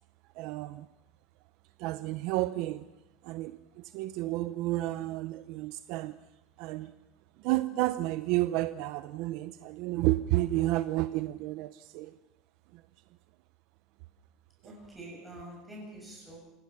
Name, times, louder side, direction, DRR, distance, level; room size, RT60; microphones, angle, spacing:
voice 1, 0.4-0.9 1.8-2.8 3.2-6.2 6.6-6.9 7.4-12.2 12.7-12.8, right 17 dB, 50° right, 12 dB, 0.6 m, -31 dB
voice 2, 14.6-16.4, right 1 dB, 5° right, -4 dB, 7.6 m, -46 dB
27.5 x 16.5 x 5.8 m, 0.95 s
cardioid pair, 170°, 0 cm